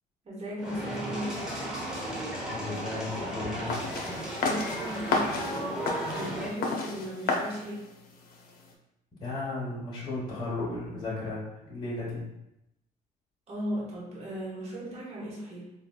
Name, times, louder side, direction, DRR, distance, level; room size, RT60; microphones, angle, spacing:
voice 1, 0.2-1.5 4.4-5.8 6.1-7.9 13.5-15.7, equal, 40° right, -6 dB, 1.2 m, -37 dB
sound 1, 0.6-6.5, right 1 dB, 5° right, 0.8 m, -35 dB
voice 2, 2.5-3.7 9.2-12.2, left 2 dB, 30° left, -7 dB, 1.1 m, -34 dB
sound 2, 3.7-8.7, left 3 dB, 60° left, 0.6 m, -33 dB
4.0 x 2.3 x 2.3 m, 0.86 s
cardioid pair, 110°, 17 cm